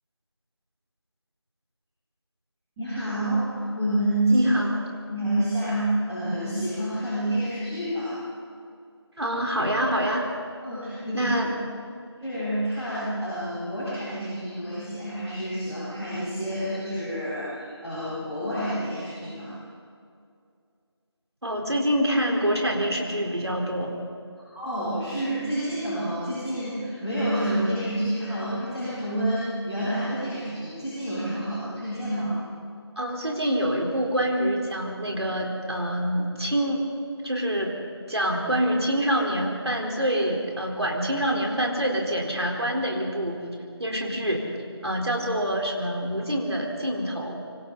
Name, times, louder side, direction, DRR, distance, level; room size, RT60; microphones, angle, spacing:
voice 1, 2.8-4.5 5.1-8.1 10.6-11.3 12.2-19.5 24.5-32.4, right 1 dB, 5° right, -23 dB, 2.9 m, -28 dB
voice 2, 4.3-4.8 9.2-10.3 11.1-11.5 21.4-23.9 33.0-36.9 37.2-37.7 38.1-43.4 43.8-44.5 44.8-47.4, equal, 65° right, 0 dB, 4.5 m, -26 dB
25.5 x 25.0 x 4.2 m, 2.3 s
figure-of-eight pair, 175°, 15 cm